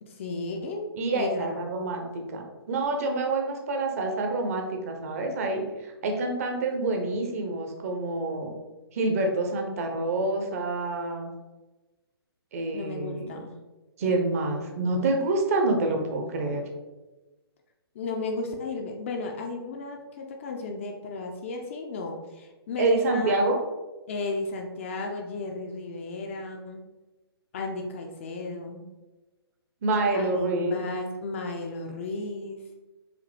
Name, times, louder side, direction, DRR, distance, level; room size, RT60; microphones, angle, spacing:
voice 1, 0.0-1.6 12.7-13.5 15.9-16.3 17.9-23.4 24.1-26.8 27.5-28.9 30.1-32.6, left 3 dB, 30° left, 3 dB, 0.4 m, -34 dB
voice 2, 1.0-8.5 8.9-11.3 12.5-13.4 14.0-16.7 22.8-23.6 29.8-30.8, right 2 dB, 35° right, 3 dB, 0.6 m, -27 dB
4.9 x 2.6 x 3.2 m, 1.1 s
figure-of-eight pair, 130°, 13 cm